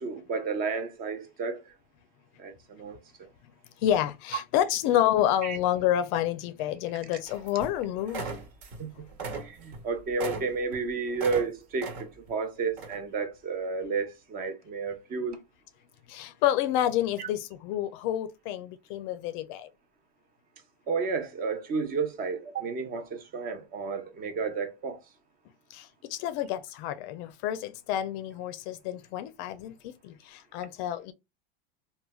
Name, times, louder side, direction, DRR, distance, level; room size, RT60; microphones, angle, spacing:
voice 1, 0.0-1.6 2.4-3.0 5.4-5.6 8.8-8.9 9.4-15.4 17.2-17.3 20.9-25.0, right 4 dB, 30° right, 0.6 m, -32 dB
voice 2, 3.8-8.3 16.1-19.7 25.7-31.1, left 11 dB, 55° left, 0.4 m, -29 dB
sound 1, 7.3-7.8 8.1-8.8 9.1-11.5 11.8-12.3 12.8-13.0, right 4 dB, 65° right, 1.3 m, -38 dB
3.1 x 2.2 x 2.2 m
supercardioid pair, 130°, 30 cm